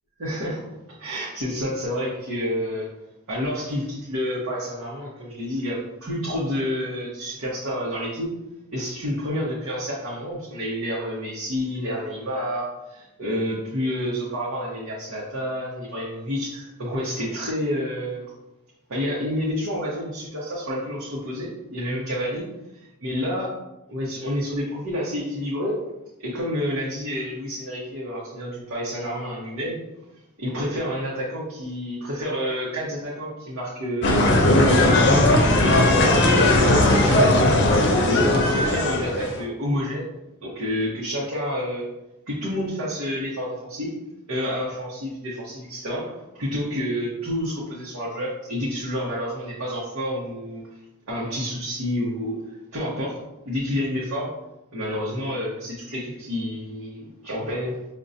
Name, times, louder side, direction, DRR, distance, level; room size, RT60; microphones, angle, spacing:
voice 1, 0.2-0.7 1.0-2.9 3.3-8.3 8.7-18.3 18.9-22.4 23.0-23.5 23.9-25.8 26.2-29.8 30.4-37.3 38.0-40.0 40.4-41.9 42.3-43.9 44.3-50.6 51.1-52.4 52.7-53.2 53.4-54.3 54.7-57.8, equal, 85° right, -7 dB, 0.9 m, -29 dB
sound 1, 34.0-39.4, left 1 dB, 60° left, 0.6 m, -18 dB
5.2 x 2.2 x 2.6 m, 0.91 s
head